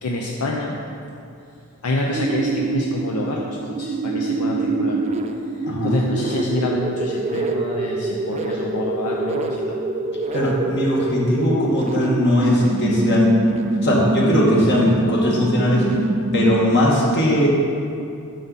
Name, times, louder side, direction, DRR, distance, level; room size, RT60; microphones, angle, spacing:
voice 1, 0.0-0.8 1.8-5.0 5.8-9.8 12.4-12.5, left 1 dB, 80° left, -1 dB, 0.7 m, -27 dB
sound 1, 2.1-16.9, right 2 dB, 30° right, 0.4 m, -25 dB
voice 2, 10.3-13.4 13.8-15.9 16.3-17.5, left 1 dB, 55° left, -4 dB, 1.9 m, -19 dB
9.2 x 6.8 x 4.1 m, 2.6 s
head